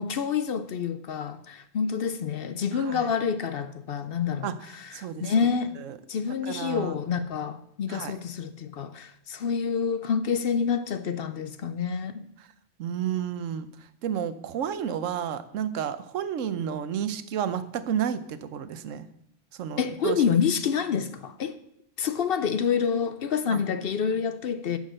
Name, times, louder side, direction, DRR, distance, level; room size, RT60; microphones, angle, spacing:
voice 1, 0.0-5.8 6.1-12.3 19.8-21.6 22.0-24.8, left 6 dB, 60° left, 0.7 m, -28 dB
voice 2, 2.7-3.1 4.4-4.5 4.9-5.5 5.8-6.0 6.4-6.9 7.9-8.2 12.4-12.5 12.8-13.7 14.0-19.1 19.6-20.2 23.5-23.6, right 9 dB, 85° right, 1.1 m, -31 dB
9.4 x 6.5 x 6.5 m
omnidirectional pair, 1.3 m